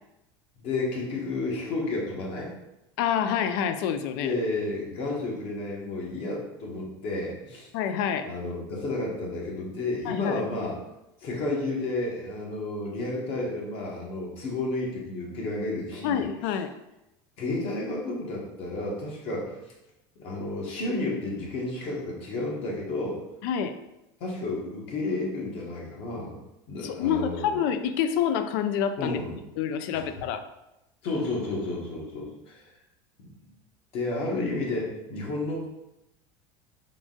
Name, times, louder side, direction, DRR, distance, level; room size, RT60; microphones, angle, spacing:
voice 1, 0.6-2.5 4.2-7.7 8.2-10.8 11.2-16.2 17.4-19.6 20.2-23.2 24.2-26.3 26.7-27.6 29.0-29.4 29.9-30.1 31.0-32.7 33.9-35.6, left 2 dB, 55° left, -2 dB, 1.3 m, -31 dB
voice 2, 3.0-4.3 7.7-8.3 10.1-10.4 16.0-16.7 23.4-23.7 26.8-29.2 29.6-30.4, left 8 dB, 75° left, 9 dB, 0.4 m, -27 dB
3.7 x 2.5 x 3.8 m, 0.93 s
supercardioid pair, 120°, 12 cm